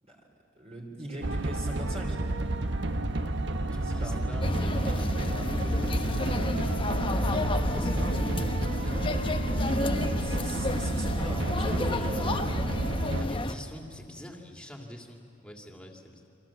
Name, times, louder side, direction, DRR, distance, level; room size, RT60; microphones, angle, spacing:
voice 1, 0.5-2.2 3.8-4.3 7.5-7.9 9.9-12.6, right 1 dB, 35° right, 0 dB, 3.3 m, -40 dB
sound 1, 1.2-13.2, right 2 dB, 65° right, 1.2 m, -31 dB
voice 2, 3.7-5.8 7.7-9.1 13.0-16.2, equal, 5° left, 1 dB, 2.6 m, -45 dB
sound 2, 4.4-13.5, left 1 dB, 25° left, 1.0 m, -30 dB
29.0 x 24.5 x 7.4 m, 2.5 s
head